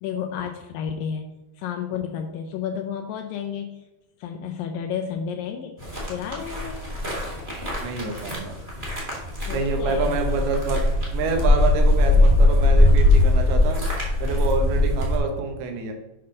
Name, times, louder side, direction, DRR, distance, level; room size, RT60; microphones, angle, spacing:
voice 1, 0.0-1.3 1.6-3.9 4.2-6.9 8.0-8.1 9.5-10.3 11.4-11.6, left 7 dB, 80° left, 4 dB, 2.1 m, -32 dB
sound 1, 5.8-15.2, left 2 dB, 25° right, 1.0 m, -20 dB
voice 2, 7.8-8.5 9.5-10.8 11.1-13.8 14.2-15.9, right 4 dB, 85° right, 3 dB, 3.0 m, -27 dB
8.5 x 5.6 x 3.8 m, 0.97 s
omnidirectional pair, 4.4 m